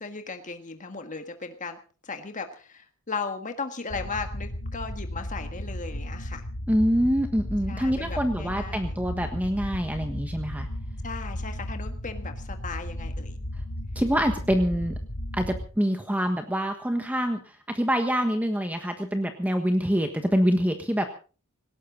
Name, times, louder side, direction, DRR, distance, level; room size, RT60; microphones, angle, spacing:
voice 1, 0.0-1.8 2.0-6.5 7.7-9.0 11.0-13.4, left 4 dB, 35° left, 6 dB, 1.6 m, -36 dB
sound 1, 3.9-15.7, left 1 dB, 85° left, 2.4 m, -35 dB
voice 2, 6.7-10.7 13.9-14.9 15.3-21.1, equal, 5° right, 6 dB, 1.4 m, -25 dB
19.0 x 17.5 x 3.9 m, 0.36 s
head